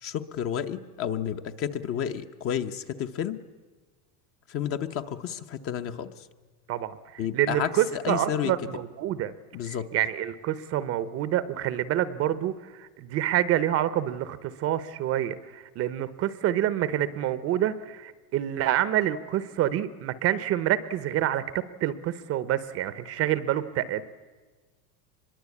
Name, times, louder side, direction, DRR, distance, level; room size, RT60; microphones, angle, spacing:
voice 1, 0.0-3.4 4.5-6.3 7.2-8.5 9.5-9.9, left 9 dB, 30° left, 9 dB, 0.8 m, -31 dB
voice 2, 6.7-9.3 9.6-24.0, right 12 dB, 30° right, 15 dB, 0.8 m, -27 dB
25.0 x 22.0 x 8.4 m, 1.3 s
supercardioid pair, 155°, 47 cm